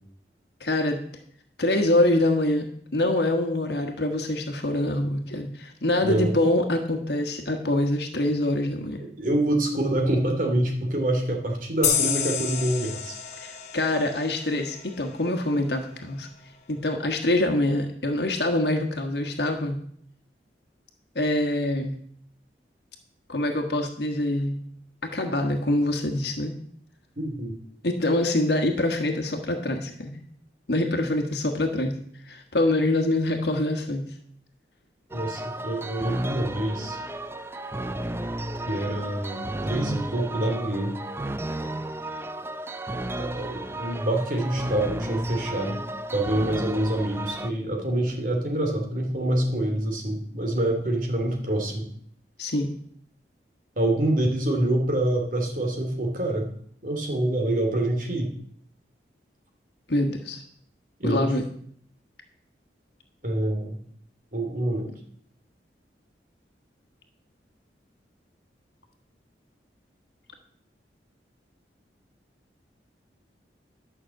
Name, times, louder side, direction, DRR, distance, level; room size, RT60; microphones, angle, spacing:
voice 1, 0.6-1.0 1.6-2.7 2.9-9.0 13.4-16.3 16.7-19.8 21.1-22.0 23.3-24.6 25.0-26.5 27.8-30.2 30.7-32.0 32.2-34.0 52.4-52.7 59.9-60.4 61.0-61.4, left 1 dB, 70° left, 4 dB, 1.4 m, -25 dB
voice 2, 6.0-6.3 9.0-13.2 27.2-27.6 35.1-37.0 38.7-40.9 43.2-45.8 46.1-51.9 53.8-56.5 56.8-58.3 61.0-61.3 63.2-63.8 64.3-64.9, right 1 dB, 50° right, 2 dB, 2.6 m, -26 dB
sound 1, 11.8-15.2, left 8 dB, 40° left, 1.4 m, -29 dB
sound 2, 35.1-47.5, right 1 dB, 15° right, 0.4 m, -33 dB
12.0 x 6.0 x 7.5 m, 0.63 s
head